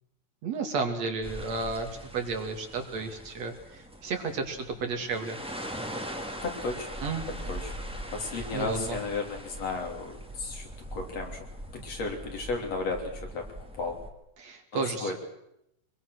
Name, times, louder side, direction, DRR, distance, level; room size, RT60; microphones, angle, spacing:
voice 1, 0.4-5.4 7.0-7.3 8.5-9.0 14.4-15.2, right 4 dB, 65° right, 4 dB, 3.5 m, -32 dB
sound 1, 1.2-14.1, equal, ahead, 1.7 m, -41 dB
voice 2, 6.4-6.9 7.3-7.7 8.1-11.4 11.7-13.4 13.7-14.0 14.7-15.2, left 3 dB, 60° left, 2 dB, 4.1 m, -34 dB
24.0 x 22.0 x 6.4 m, 0.81 s
omnidirectional pair, 3.3 m